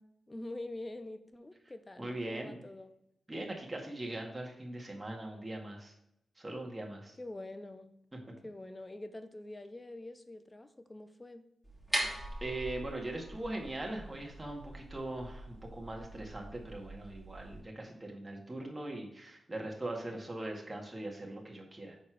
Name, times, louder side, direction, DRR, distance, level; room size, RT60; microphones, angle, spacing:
voice 1, 0.0-3.0 7.2-7.9 8.4-11.5, left 1 dB, 25° left, 10 dB, 0.8 m, -45 dB
voice 2, 2.0-2.6 3.3-5.9 6.4-7.1 8.1-8.2 12.4-21.9, right 1 dB, 25° right, 0 dB, 2.0 m, -41 dB
sound 1, 11.6-17.6, right 1 dB, ahead, 2.5 m, -42 dB
6.3 x 4.2 x 4.8 m, 0.80 s
supercardioid pair, 45°, 0 cm